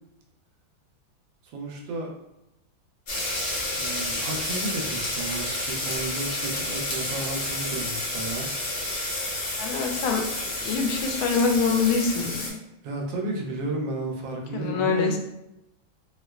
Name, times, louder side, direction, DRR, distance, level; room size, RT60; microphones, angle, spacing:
voice 1, 1.5-2.1 3.8-8.5 12.8-15.2, right 2 dB, 75° right, 1 dB, 1.3 m, -32 dB
sound 1, 3.1-12.5, left 1 dB, 65° left, 0.5 m, -30 dB
voice 2, 9.6-10.3 10.6-12.6 14.5-15.2, left 5 dB, 85° left, 3 dB, 1.4 m, -25 dB
3.4 x 2.9 x 2.3 m, 0.88 s
omnidirectional pair, 2.2 m